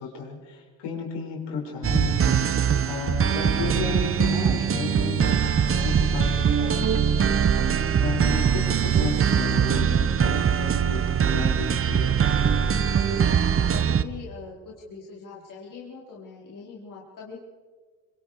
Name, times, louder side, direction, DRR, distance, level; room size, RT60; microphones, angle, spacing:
voice 1, 0.0-2.4 2.9-12.1, left 5 dB, 60° left, 0 dB, 6.3 m, -33 dB
sound 1, 1.8-14.0, right 8 dB, 30° right, 1.0 m, -22 dB
voice 2, 12.9-17.4, left 4 dB, 40° left, -4 dB, 4.4 m, -42 dB
25.5 x 23.5 x 4.8 m, 1.5 s
supercardioid pair, 85°, 47 cm